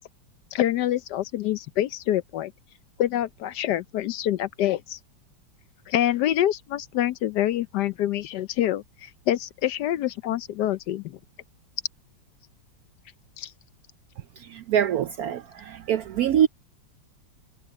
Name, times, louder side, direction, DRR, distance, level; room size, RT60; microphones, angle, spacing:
voice 1, 0.5-2.5 3.0-5.0 5.9-11.2 13.4-13.5, left 12 dB, 70° left, 1.1 m, -26 dB
voice 2, 14.4-16.5, right 9 dB, 70° right, 0.9 m, -24 dB
omnidirectional pair, 2.1 m